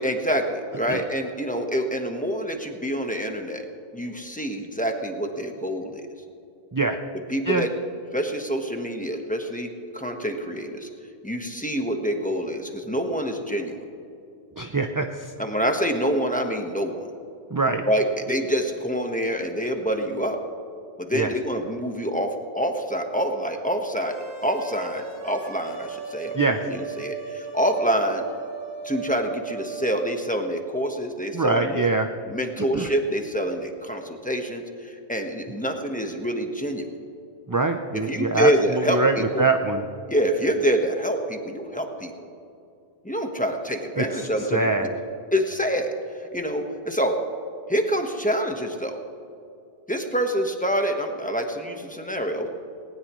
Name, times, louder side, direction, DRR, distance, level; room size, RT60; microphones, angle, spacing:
voice 1, 0.0-3.7 3.9-6.1 7.3-7.7 8.1-10.9 11.2-13.8 15.4-17.1 17.8-20.4 21.0-26.4 26.6-28.2 28.8-31.9 32.3-36.9 37.9-39.4 40.1-42.1 43.0-44.9 45.3-47.2 47.7-49.0 49.9-52.5, equal, 10° left, 3 dB, 1.2 m, -26 dB
voice 2, 14.6-15.1 17.5-17.8 21.1-21.3 26.3-26.6 31.3-32.1 32.7-32.9 37.5-38.5 38.9-39.8 44.0-44.1 44.5-44.9, right 3 dB, 25° right, 5 dB, 0.6 m, -23 dB
sound 1, 24.0-30.1, right 5 dB, 70° right, 1.9 m, -37 dB
19.5 x 18.5 x 3.2 m, 2.6 s
omnidirectional pair, 1.1 m